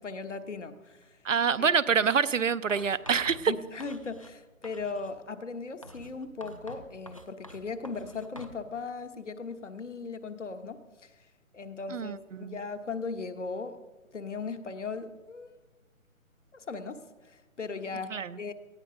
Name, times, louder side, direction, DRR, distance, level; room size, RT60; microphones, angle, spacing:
voice 1, 0.0-1.2 1.6-1.8 3.5-11.2 11.5-13.8 14.1-15.6 16.5-18.5, left 4 dB, 55° left, 9 dB, 1.3 m, -38 dB
voice 2, 1.2-3.5 11.9-12.6 18.1-18.4, right 6 dB, 60° right, 15 dB, 0.7 m, -26 dB
Writing, 2.7-4.4 4.6-5.2 5.8-8.6, right 1 dB, 25° left, 0.7 m, -48 dB
18.5 x 14.0 x 5.1 m, 1.2 s
hypercardioid pair, 175°, 42 cm